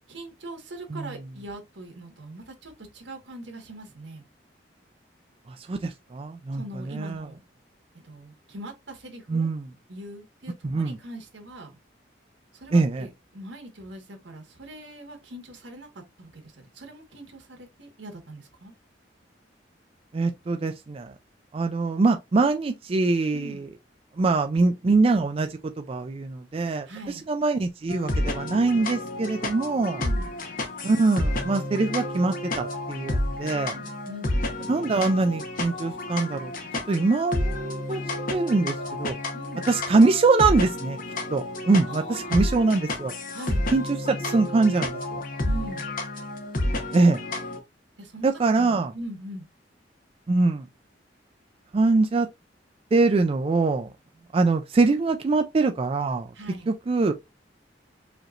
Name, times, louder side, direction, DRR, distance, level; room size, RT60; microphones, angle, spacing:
voice 1, 0.1-4.3 6.5-7.4 7.9-9.5 9.9-11.7 12.5-18.7 23.3-23.6 26.9-27.3 29.9-30.4 33.7-34.3 36.9-37.0 39.3-39.6 41.9-42.7 43.3-43.6 45.4-45.9 48.0-49.5 56.3-56.7, right 1 dB, 80° right, 1.4 m, -41 dB
voice 2, 5.7-6.6 6.9-7.2 9.3-9.6 10.6-11.0 12.7-13.1 20.1-21.1 21.5-23.7 24.2-26.9 27.3-30.0 30.8-33.7 34.7-36.5 36.9-38.0 38.3-39.2 39.7-41.0 41.3-43.1 43.7-45.2 46.9-47.2 48.2-48.9 50.3-50.7 51.7-52.3 52.9-53.9 54.3-56.3 56.7-57.1, right 3 dB, 30° right, 0.3 m, -23 dB
sound 1, 27.9-47.6, left 1 dB, 50° left, 1.0 m, -30 dB
5.0 x 2.9 x 2.4 m
head